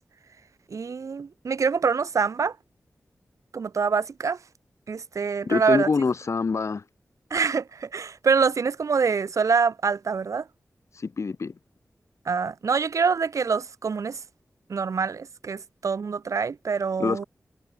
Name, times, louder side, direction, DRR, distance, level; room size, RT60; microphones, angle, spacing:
voice 1, 0.7-2.6 3.5-4.4 4.9-5.9 7.3-10.5 12.2-14.2 14.7-17.2, right 5 dB, 85° right, 3.0 m, -25 dB
voice 2, 5.5-6.8 11.0-11.5 17.0-17.3, left 4 dB, 65° left, 3.9 m, -25 dB
wide cardioid pair, 85°, 5 cm